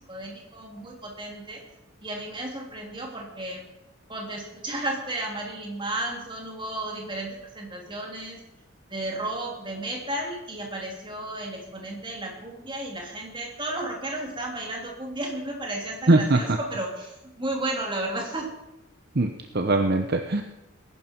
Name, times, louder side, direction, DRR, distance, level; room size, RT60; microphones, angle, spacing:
voice 1, 0.0-1.6 2.0-3.6 4.1-8.4 8.9-18.5, right 1 dB, 25° right, 0 dB, 3.0 m, -33 dB
voice 2, 16.1-16.6 19.1-20.4, right 2 dB, 50° right, 5 dB, 0.9 m, -21 dB
20.0 x 11.5 x 4.6 m, 0.91 s
head